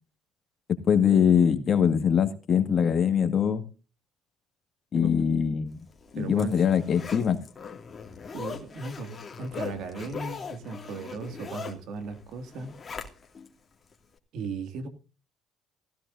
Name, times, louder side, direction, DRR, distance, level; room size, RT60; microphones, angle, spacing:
voice 1, 0.7-3.6 4.9-5.8 6.1-7.4, left 7 dB, 50° left, 8 dB, 1.9 m, -23 dB
Zipper (clothing), 5.9-13.5 13.9-14.0, left 6 dB, 30° left, 2.3 m, -40 dB
voice 2, 6.2-6.5 8.3-12.8 14.3-14.9, right 4 dB, 70° right, 8 dB, 2.3 m, -36 dB
16.0 x 15.0 x 2.6 m, 0.35 s
supercardioid pair, 85°, 0 cm